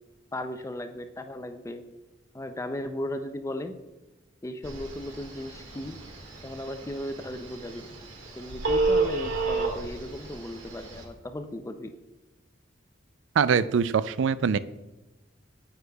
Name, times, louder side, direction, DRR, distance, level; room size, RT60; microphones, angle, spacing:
voice 1, 0.3-1.8 2.3-3.8 4.4-6.0 6.4-7.9 8.4-11.9, left 1 dB, 15° left, 8 dB, 0.4 m, -36 dB
Telephone, 4.6-11.0, right 3 dB, 85° right, 1.8 m, -31 dB
voice 2, 13.4-14.6, right 6 dB, 70° right, 15 dB, 0.3 m, -23 dB
9.8 x 8.0 x 2.3 m, 1.1 s
head